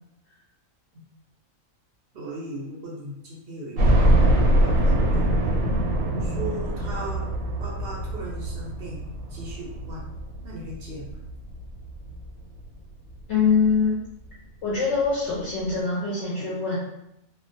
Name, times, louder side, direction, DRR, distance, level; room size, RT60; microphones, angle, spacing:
voice 1, 2.1-5.3 6.2-7.2 7.6-10.0 10.4-11.1, right 1 dB, 60° right, -3 dB, 0.6 m, -37 dB
sound 1, 3.8-12.7 13.2-13.3 13.6-13.7 14.9-15.0 15.3-15.4, right 1 dB, 85° right, 1.0 m, -23 dB
voice 2, 13.3-14.0 14.6-16.8, left 5 dB, 65° left, -6 dB, 0.8 m, -23 dB
2.2 x 2.2 x 2.6 m, 0.82 s
omnidirectional pair, 1.5 m